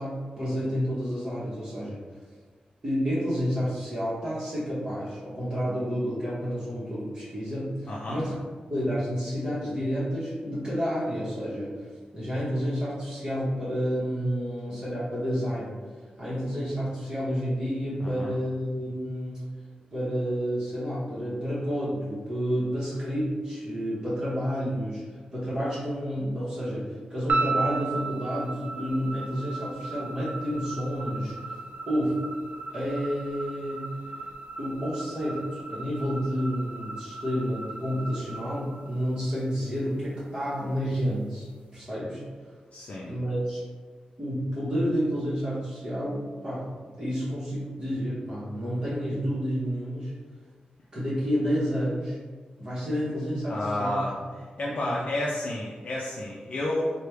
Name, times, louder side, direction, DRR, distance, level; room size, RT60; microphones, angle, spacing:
voice 1, 0.0-2.0 2.8-8.3 8.7-15.8 16.2-19.4 19.9-31.5 31.9-32.2 32.7-33.9 34.6-41.5 41.7-42.2 43.0-43.6 44.2-50.1 50.9-52.2 52.6-53.9 54.6-54.9, equal, 30° right, -10 dB, 1.0 m, -30 dB
voice 2, 7.9-8.2 18.0-18.3 42.7-43.1 53.5-54.1 54.6-56.9, left 1 dB, 55° left, -4 dB, 0.4 m, -30 dB
sound 1, 27.3-39.6, right 3 dB, 80° right, 0.4 m, -35 dB
3.2 x 2.2 x 3.1 m, 1.5 s
wide cardioid pair, 95°, 3 cm